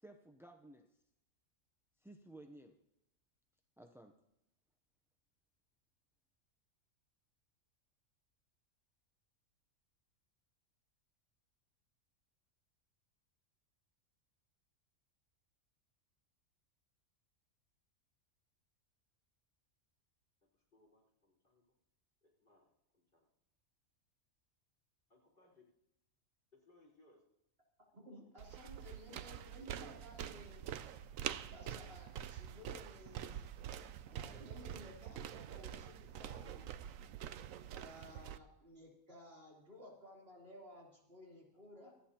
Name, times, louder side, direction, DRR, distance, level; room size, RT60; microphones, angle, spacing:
voice 1, 0.0-1.0 2.0-2.8 3.8-4.1, right 1 dB, 5° right, 4 dB, 0.3 m, -56 dB
voice 2, 20.5-21.7 22.2-23.3 25.1-25.6 26.6-27.2, left 2 dB, 40° left, -3 dB, 5.0 m, -69 dB
voice 3, 27.9-30.6 31.5-33.4 34.0-36.7 37.7-41.9, left 1 dB, 45° right, -3 dB, 3.7 m, -56 dB
sound 1, 28.4-38.4, right 10 dB, 80° right, 1.0 m, -46 dB
25.5 x 9.6 x 2.9 m, 0.79 s
omnidirectional pair, 1.4 m